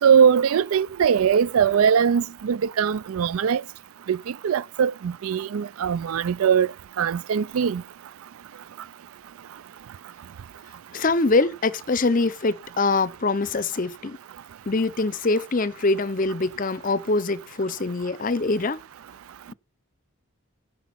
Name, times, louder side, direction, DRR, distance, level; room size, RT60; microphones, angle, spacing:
voice 1, 0.0-3.6 4.1-6.7 7.0-7.8, right 7 dB, 85° right, 0.4 m, -21 dB
voice 2, 10.9-14.2 14.7-18.8, left 3 dB, 40° left, 0.6 m, -24 dB
11.0 x 5.2 x 5.9 m
head